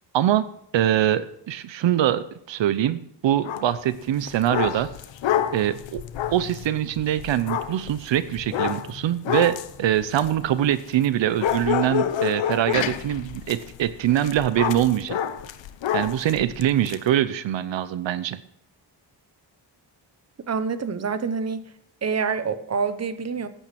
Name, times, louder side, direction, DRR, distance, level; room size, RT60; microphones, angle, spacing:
voice 1, 0.1-0.4 0.7-4.9 5.5-6.0 6.3-15.2 15.9-18.4, right 11 dB, 85° right, 14 dB, 0.8 m, -23 dB
sound 1, 3.4-3.7 4.1-11.1 11.4-17.0, left 10 dB, 90° left, 1.0 m, -28 dB
voice 2, 20.5-21.7 22.0-23.5, right 5 dB, 35° right, 12 dB, 0.9 m, -26 dB
15.0 x 9.2 x 5.9 m, 0.70 s
wide cardioid pair, 165°, 43 cm